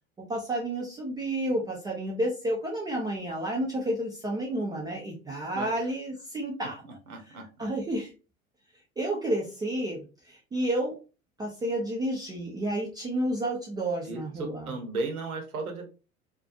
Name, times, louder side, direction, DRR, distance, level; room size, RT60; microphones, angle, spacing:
voice 1, 0.3-6.8 7.6-8.1 9.0-11.0 11.4-14.8, right 1 dB, 10° right, -3 dB, 0.3 m, -30 dB
voice 2, 5.5-5.9 7.1-7.7 14.1-15.9, right 3 dB, 80° right, 4 dB, 0.8 m, -35 dB
2.5 x 2.3 x 2.3 m, 0.33 s
figure-of-eight pair, 75°, 43 cm